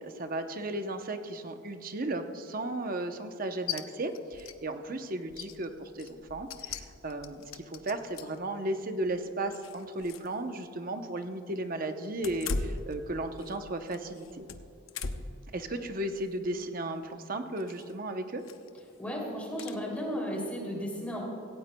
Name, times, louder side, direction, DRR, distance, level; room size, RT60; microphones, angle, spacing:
voice 1, 0.0-14.4 15.5-18.4, right 1 dB, 45° right, 7 dB, 0.8 m, -35 dB
sound 1, 3.7-3.8 4.1-4.6 4.9-5.0 5.3-8.4 9.0-10.3 10.6-10.7 12.1-13.6 13.9-15.4 15.9-16.2 17.6-17.9 18.4-18.8 19.6-19.8, left 4 dB, 80° left, 0.7 m, -39 dB
voice 2, 19.0-21.3, equal, 5° left, -3 dB, 2.8 m, -34 dB
17.0 x 17.0 x 2.2 m, 2.7 s
head